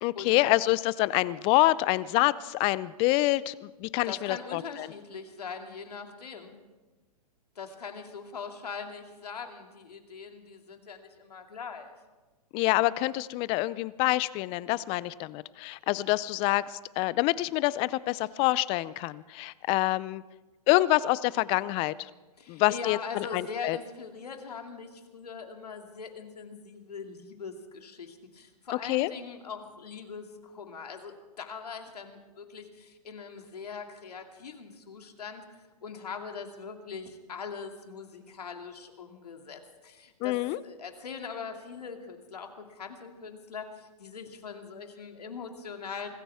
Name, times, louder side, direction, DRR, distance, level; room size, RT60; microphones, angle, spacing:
voice 1, 0.0-4.9 12.5-20.2 20.7-22.1 22.5-23.8 28.8-29.1 40.2-40.6, left 18 dB, 30° left, 20 dB, 0.4 m, -27 dB
voice 2, 4.0-6.5 7.6-11.9 22.4-46.1, left 5 dB, 80° left, 4 dB, 2.4 m, -41 dB
25.0 x 15.0 x 3.5 m, 1.2 s
hypercardioid pair, 125°, 20 cm